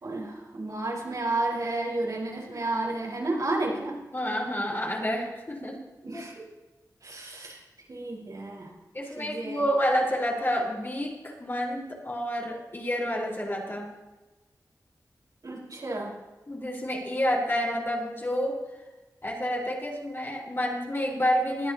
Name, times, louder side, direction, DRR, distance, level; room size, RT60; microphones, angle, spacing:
voice 1, 0.0-4.0 6.0-6.4 7.0-7.6 7.9-8.7 9.2-9.6 15.4-16.1, right 2 dB, 60° right, -4 dB, 4.7 m, -31 dB
voice 2, 4.1-5.8 6.1-6.3 8.9-13.9 16.5-18.6 19.2-21.7, equal, 35° left, -3 dB, 4.5 m, -29 dB
21.0 x 12.0 x 2.9 m, 1.1 s
cardioid pair, 55°, 7 cm